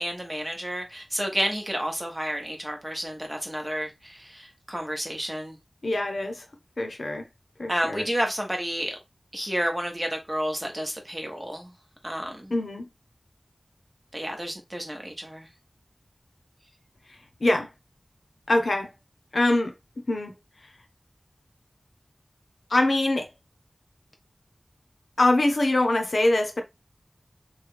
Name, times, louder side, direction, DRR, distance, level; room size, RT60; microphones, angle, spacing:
voice 1, 0.0-5.6 7.7-9.0 9.3-11.7 12.0-12.5 14.1-15.5, equal, 20° right, 0.9 m, -30 dB
voice 2, 5.8-6.4 6.8-7.2 7.6-8.1 12.5-12.8 17.4-17.7 18.5-18.9 19.3-19.7 20.1-20.3 22.7-23.3 25.2-26.6, left 2 dB, 75° left, 0.7 m, -23 dB
3.2 x 2.3 x 3.2 m
wide cardioid pair, 60°, 0 cm